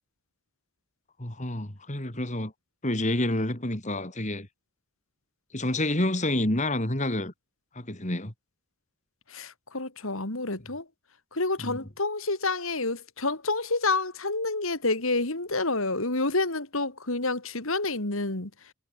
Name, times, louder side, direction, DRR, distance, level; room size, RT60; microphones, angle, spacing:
voice 1, 1.2-2.5 2.8-4.5 5.5-7.3 7.7-8.3 11.6-11.8, left 1 dB, 35° left, 3.3 m, -28 dB
voice 2, 9.3-10.9 11.3-18.7, left 3 dB, 65° left, 3.3 m, -29 dB
head